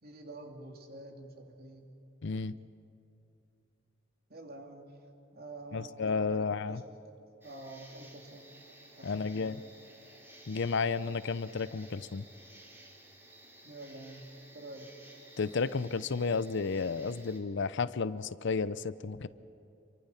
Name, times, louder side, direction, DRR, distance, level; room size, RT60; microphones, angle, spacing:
voice 1, 0.0-1.9 4.3-5.0 5.3-6.0 6.3-7.2 7.4-8.5 9.0-9.6 13.6-14.3 14.5-14.9, right 2 dB, 50° right, 2 dB, 2.8 m, -48 dB
voice 2, 2.2-2.5 5.7-6.8 9.0-9.6 10.5-12.2 15.4-19.3, left 4 dB, 60° left, 15 dB, 0.6 m, -32 dB
sound 1, 7.4-17.4, right 1 dB, 10° right, 3.4 m, -55 dB
29.0 x 24.0 x 5.8 m, 2.7 s
head